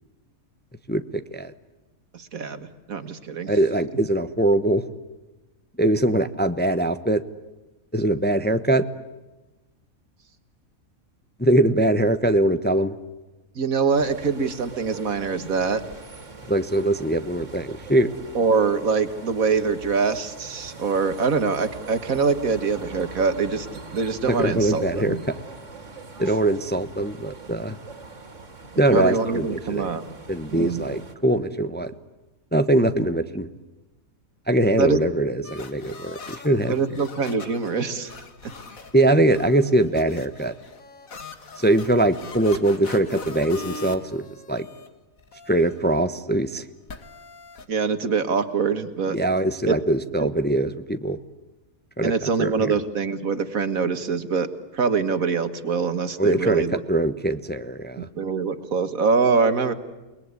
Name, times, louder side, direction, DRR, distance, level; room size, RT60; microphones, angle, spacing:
voice 1, 0.9-1.5 3.5-4.9 5.8-7.2 7.9-8.9 11.4-12.9 16.5-18.1 24.3-25.2 26.2-27.8 28.8-29.9 30.3-31.9 32.5-33.5 34.5-36.7 38.9-40.5 41.6-44.7 45.5-46.6 49.1-51.2 52.0-52.8 56.2-58.1, right 1 dB, 10° left, 10 dB, 0.8 m, -22 dB
voice 2, 2.1-3.5 13.6-15.8 18.4-23.7 23.9-25.2 28.9-30.0 30.5-30.8 34.8-35.0 36.7-38.1 47.7-49.2 49.7-49.8 50.2-50.3 52.0-54.5 54.7-56.8 58.0-59.7, right 5 dB, 75° right, 10 dB, 2.0 m, -24 dB
sound 1, 13.9-31.1, right 3 dB, 60° right, 2.8 m, -42 dB
sound 2, 35.4-44.9 45.2-46.0 46.9-47.7, left 4 dB, 75° left, 2.3 m, -41 dB
29.0 x 21.0 x 9.7 m, 1.1 s
omnidirectional pair, 1.5 m